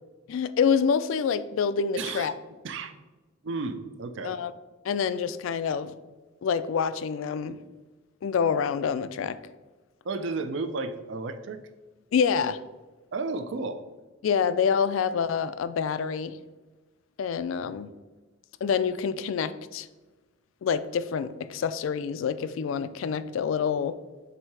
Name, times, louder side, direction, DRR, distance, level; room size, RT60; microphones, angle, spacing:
voice 1, 0.3-2.3 4.2-4.5 4.8-5.9 6.4-7.6 8.2-9.4 12.1-12.6 14.2-16.4 17.2-17.9 18.6-19.9 20.6-24.0, left 6 dB, 75° left, 13 dB, 0.3 m, -27 dB
voice 2, 2.0-2.3 2.6-2.9 3.4-4.4 10.0-11.6 13.1-13.8, right 3 dB, 65° right, 10 dB, 0.4 m, -32 dB
7.5 x 2.8 x 4.6 m, 1.2 s
head